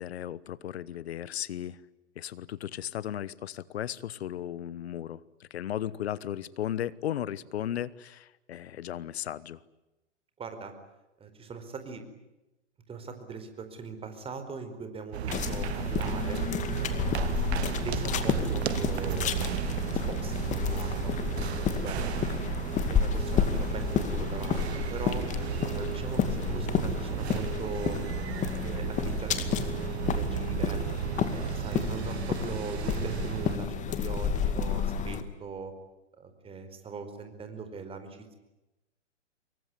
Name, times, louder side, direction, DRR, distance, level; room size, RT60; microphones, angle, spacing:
voice 1, 0.0-1.8 2.2-9.6, left 11 dB, 60° left, 20 dB, 1.2 m, -35 dB
voice 2, 10.4-10.7 11.2-12.0 12.9-16.4 16.8-17.1 17.8-19.4 19.7-22.0 22.4-25.2 25.7-28.3 28.6-30.8 31.3-35.7 36.2-38.3, right 4 dB, 15° right, 8 dB, 4.6 m, -41 dB
sound 1, 15.1-33.6, right 11 dB, 60° right, 0.9 m, -34 dB
sound 2, 15.3-35.2, left 7 dB, 20° left, 2.3 m, -31 dB
25.5 x 23.5 x 9.7 m, 0.97 s
hypercardioid pair, 125°, 36 cm